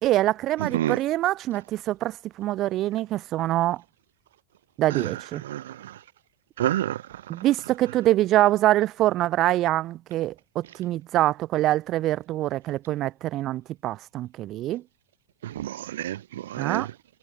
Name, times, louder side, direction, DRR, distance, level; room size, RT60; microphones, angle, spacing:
voice 1, 0.0-3.8 4.8-5.4 7.3-14.8 16.6-16.9, right 15 dB, 35° right, 1.3 m, -24 dB
voice 2, 0.6-1.0 4.9-5.1 5.4-5.9 6.6-7.0 15.4-16.9, right 13 dB, 60° right, 3.6 m, -29 dB
figure-of-eight pair, 90°, 0 cm